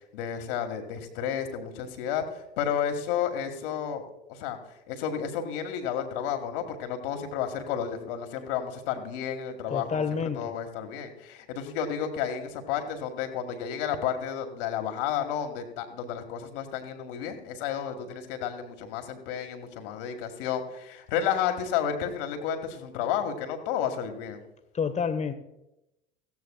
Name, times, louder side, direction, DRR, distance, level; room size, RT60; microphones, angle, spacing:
voice 1, 0.1-4.0 4.3-4.6 4.9-24.4, left 8 dB, 55° left, 2.0 m, -31 dB
voice 2, 9.7-10.5 24.7-25.3, left 6 dB, 20° left, 1.2 m, -28 dB
17.5 x 15.0 x 2.4 m
figure-of-eight pair, 75°, 32 cm